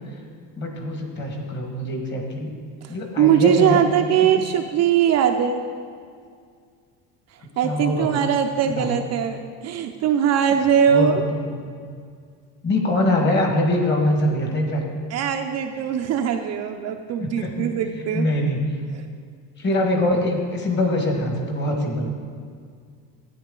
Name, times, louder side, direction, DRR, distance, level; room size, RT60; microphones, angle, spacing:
voice 1, 0.6-2.5 2.9-3.8 4.4-4.5 7.6-8.2 8.7-9.0 10.9-11.5 11.9-12.0 12.6-14.8 17.2-17.7 18.1-18.6 19.6-22.1, left 1 dB, 30° left, 2 dB, 1.5 m, -23 dB
voice 2, 2.8-5.6 7.6-11.3 15.1-18.3 18.9-19.0, right 8 dB, 45° right, 5 dB, 0.5 m, -21 dB
13.0 x 9.6 x 3.7 m, 2.1 s
cardioid pair, 170°, 39 cm